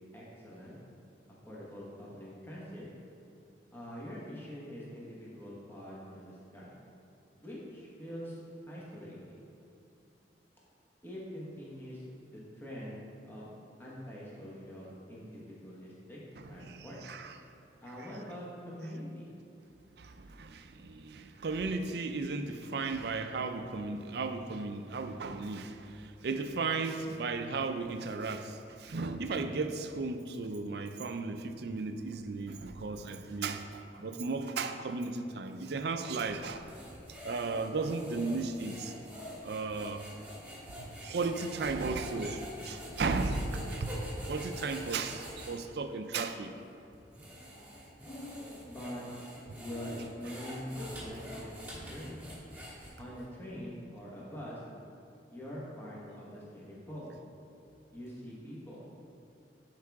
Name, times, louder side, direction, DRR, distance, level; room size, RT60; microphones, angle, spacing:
voice 1, 0.1-0.8 1.5-2.9 3.7-6.8 7.4-9.5 11.0-13.0 13.2-13.5 13.8-16.2 16.5-17.0 17.8-19.3 48.6-49.1 49.6-52.3 53.0-54.6 55.3-57.1 57.9-58.9, equal, 15° left, 1.3 m, -44 dB
voice 2, 16.4-17.3 20.0-36.7 37.2-38.9 39.4-40.1 40.8-44.0 44.3-46.6 49.5-49.6, right 3 dB, 65° right, 0.5 m, -35 dB
sound 1, 36.4-45.6 46.2-46.3 46.9-53.2, equal, 10° right, 1.8 m, -46 dB
11.0 x 4.7 x 3.5 m
head